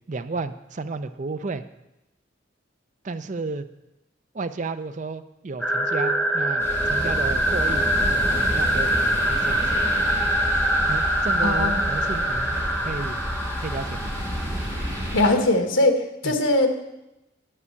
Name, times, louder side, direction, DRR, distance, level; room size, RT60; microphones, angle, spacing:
voice 1, 0.1-1.6 3.0-3.7 4.3-7.9 8.3-9.7 10.9-13.2 13.6-14.1 16.2-16.3, right 3 dB, 40° right, 11 dB, 0.5 m, -32 dB
sound 1, 5.6-15.2, right 1 dB, 5° left, 1.0 m, -24 dB
sound 2, 6.6-15.3, equal, 15° right, 3.9 m, -30 dB
voice 2, 11.4-11.8 15.1-16.7, left 2 dB, 85° left, 6 dB, 1.3 m, -21 dB
9.9 x 5.5 x 8.3 m, 0.93 s
head